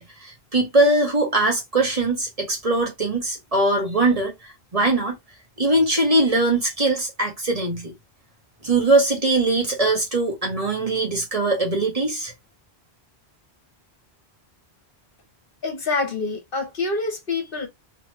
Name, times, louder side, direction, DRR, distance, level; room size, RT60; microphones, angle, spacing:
voice 1, 0.0-4.3 4.7-5.2 5.6-7.9 8.6-12.3, right 2 dB, 35° right, 1.5 m, -21 dB
voice 2, 15.6-17.7, left 3 dB, 60° left, 1.3 m, -26 dB
3.4 x 3.4 x 3.2 m
omnidirectional pair, 1.1 m